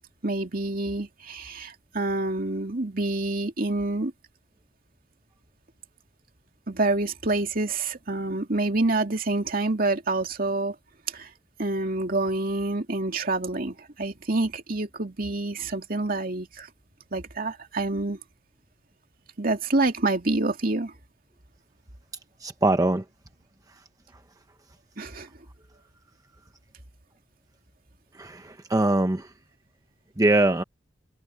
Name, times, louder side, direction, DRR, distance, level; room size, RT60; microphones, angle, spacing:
voice 1, 0.2-4.1 6.7-10.7 11.1-11.3 11.6-16.7 17.1-18.2 19.4-20.9 25.0-25.3, right 2 dB, 55° right, 2.5 m, -27 dB
voice 2, 22.4-23.0 28.1-29.3 30.2-30.6, right 2 dB, 20° right, 0.8 m, -22 dB
head